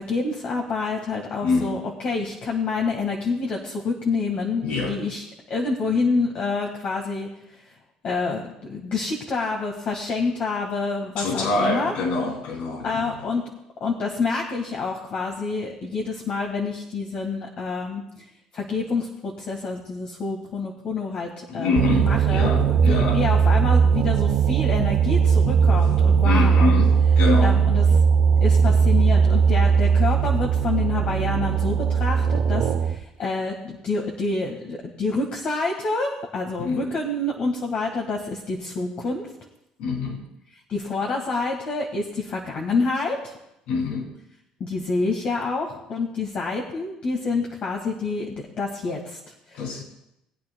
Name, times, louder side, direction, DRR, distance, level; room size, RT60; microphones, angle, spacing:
voice 1, 0.0-7.7 8.0-11.9 12.8-13.4 13.8-26.7 27.4-27.8 28.4-39.3 40.5-43.4 44.6-49.7, left 3 dB, 50° left, 0 dB, 1.6 m, -28 dB
voice 2, 1.4-1.8 4.6-4.9 11.2-13.1 21.5-23.2 25.6-25.8 26.2-27.6 36.6-36.9 39.8-40.2 43.7-44.1 49.5-49.8, left 3 dB, 80° left, 0 dB, 2.9 m, -25 dB
sound 1, 21.8-33.0, right 6 dB, 60° right, 0.7 m, -19 dB
20.5 x 8.8 x 2.2 m, 0.83 s
supercardioid pair, 90°, 2 cm